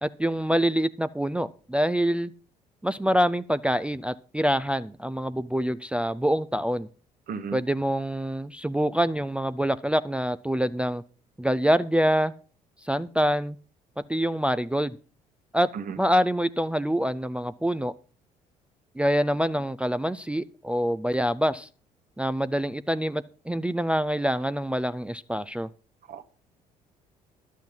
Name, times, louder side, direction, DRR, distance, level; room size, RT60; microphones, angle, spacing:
voice 1, 0.0-2.3 2.8-6.9 7.5-11.0 11.4-12.3 12.8-13.6 14.1-15.0 15.5-15.7 16.0-17.9 19.0-21.7 22.2-25.7, equal, 5° right, 12 dB, 0.5 m, -25 dB
voice 2, 7.3-7.6 15.7-15.8 26.1-26.2, right 6 dB, 50° right, 10 dB, 1.4 m, -34 dB
11.5 x 8.3 x 5.5 m, 0.39 s
hypercardioid pair, 50°, 20 cm